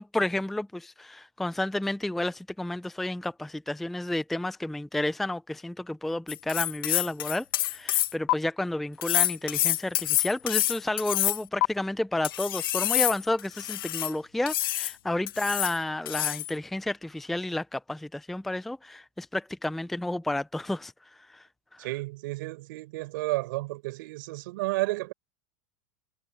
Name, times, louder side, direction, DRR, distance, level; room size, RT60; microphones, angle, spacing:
voice 1, 0.0-20.9 21.3-21.4 21.7-21.9, left 1 dB, ahead, 0.4 m, -31 dB
sound 1, 6.3-8.3 9.0-11.7 12.2-14.1 14.5-14.9 15.3-15.8 16.0-16.5, left 15 dB, 85° left, 1.0 m, -27 dB
voice 2, 21.8-25.1, right 21 dB, 65° right, 4.5 m, -32 dB
supercardioid pair, 150°, 11 cm